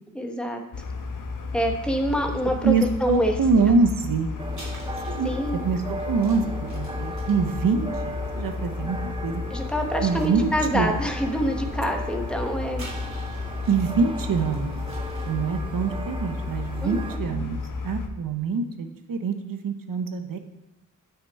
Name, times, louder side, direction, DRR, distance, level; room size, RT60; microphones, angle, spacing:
voice 1, 0.1-0.6 1.5-2.7 3.0-3.3 5.2-5.6 9.5-12.9 16.8-17.0, equal, 5° left, 3 dB, 1.0 m, -26 dB
sound 1, 0.7-18.1, left 4 dB, 75° left, 0.9 m, -33 dB
voice 2, 2.6-4.3 5.1-5.4 5.6-9.4 10.0-11.0 13.7-14.8 15.3-20.4, right 4 dB, 85° right, 7 dB, 0.9 m, -25 dB
sound 2, 2.9-3.1 4.5-9.2 9.8-10.4 10.8-10.9 12.7-13.9 14.4-15.5, right 2 dB, 55° right, 2.9 m, -47 dB
sound 3, 4.4-17.2, right 1 dB, 15° right, 0.5 m, -38 dB
8.8 x 6.0 x 4.1 m, 1.1 s
wide cardioid pair, 115°, 33 cm